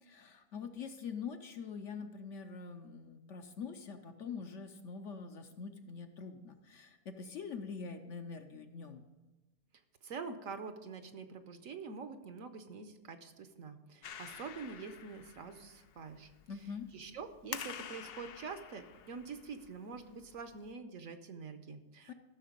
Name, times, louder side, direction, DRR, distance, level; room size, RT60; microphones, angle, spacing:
voice 1, 0.0-9.0 16.5-16.9 22.1-22.2, left 5 dB, 60° left, 6 dB, 0.9 m, -44 dB
voice 2, 10.0-16.3 16.9-22.1, right 5 dB, 65° right, 8 dB, 1.1 m, -46 dB
Clapping, 14.0-20.7, left 9 dB, 80° left, 0.5 m, -49 dB
14.0 x 6.5 x 5.1 m, 1.1 s
omnidirectional pair, 1.6 m